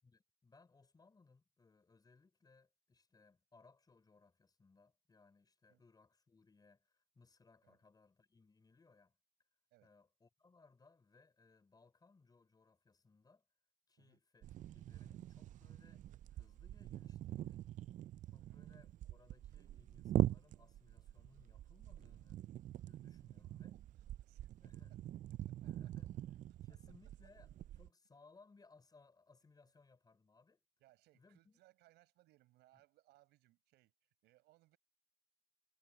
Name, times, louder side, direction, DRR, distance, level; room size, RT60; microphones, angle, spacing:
voice 1, 0.0-9.2 9.8-13.5 13.9-17.7 18.3-22.4 22.8-23.8 24.6-24.9 25.6-26.1 26.6-30.6 31.1-31.6 32.7-32.8, left 4 dB, 25° left, 4.6 m, -67 dB
sound 1, 14.4-27.9, right 13 dB, 50° right, 0.4 m, -43 dB
voice 2, 23.7-24.5 24.9-25.0 25.4-25.7 30.8-34.8, right 18 dB, 85° right, 5.8 m, -71 dB
cardioid pair, 110°, 17 cm